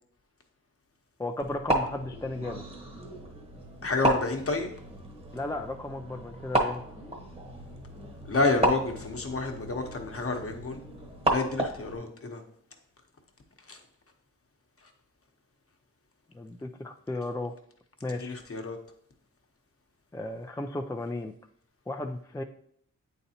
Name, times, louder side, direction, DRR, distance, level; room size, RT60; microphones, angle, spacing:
voice 1, 1.2-2.6 5.3-6.8 16.3-17.5 18.0-18.4 20.1-21.3 21.9-22.4, left 2 dB, 10° left, 4 dB, 0.3 m, -35 dB
sound 1, 1.4-12.0, right 1 dB, 20° right, 1.0 m, -33 dB
voice 2, 3.8-4.7 8.2-10.8 11.3-12.4 13.7-13.8 18.2-18.8, left 3 dB, 40° left, 4 dB, 1.0 m, -29 dB
8.4 x 4.0 x 2.8 m, 0.68 s
cardioid pair, 70°, 33 cm